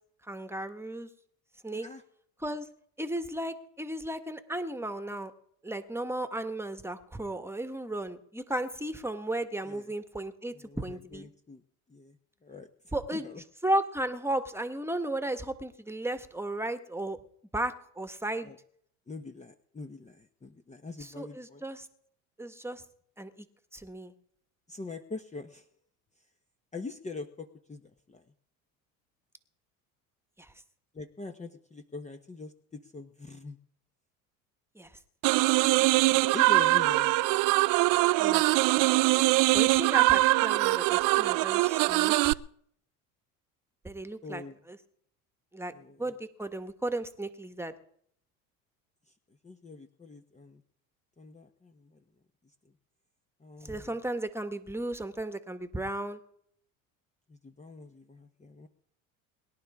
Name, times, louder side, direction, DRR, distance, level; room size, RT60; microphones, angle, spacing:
voice 1, 0.3-1.1 1.6-1.9 2.4-2.7 3.0-5.3 5.6-11.3 12.9-13.3 13.6-17.2 17.5-18.5 21.0-21.9 22.4-22.8 23.2-23.4 23.7-24.1 30.4-30.5 34.7-34.9 38.2-38.4 39.5-42.3 43.8-44.8 45.5-45.7 46.0-47.7 53.7-56.2, right 1 dB, 5° right, 9 dB, 1.5 m, -34 dB
voice 2, 10.5-11.6 11.9-12.2 12.4-12.7 13.1-13.4 18.4-18.6 19.1-21.6 24.7-25.6 26.7-27.8 28.1-28.2 30.9-33.6 35.8-35.9 36.3-37.2 44.2-44.6 45.7-46.1 49.4-50.6 51.2-52.0 53.4-53.9 57.3-58.7, left 3 dB, 15° left, 7 dB, 1.1 m, -43 dB
sound 1, 35.2-42.3, right 20 dB, 50° right, 0.6 m, -23 dB
23.0 x 11.5 x 3.7 m, 0.67 s
hypercardioid pair, 75°, 41 cm